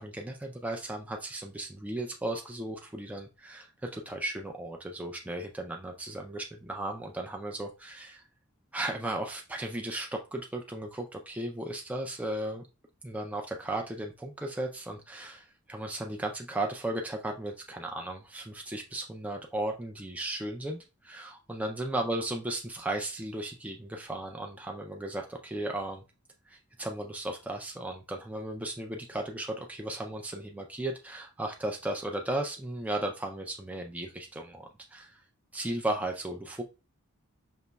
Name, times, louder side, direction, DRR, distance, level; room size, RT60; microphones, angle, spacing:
voice 1, 0.0-8.2 8.7-12.7 13.0-26.0 26.5-35.2 35.5-36.6, right 1 dB, 5° right, 2 dB, 0.3 m, -35 dB
5.3 x 2.9 x 2.2 m, 0.29 s
head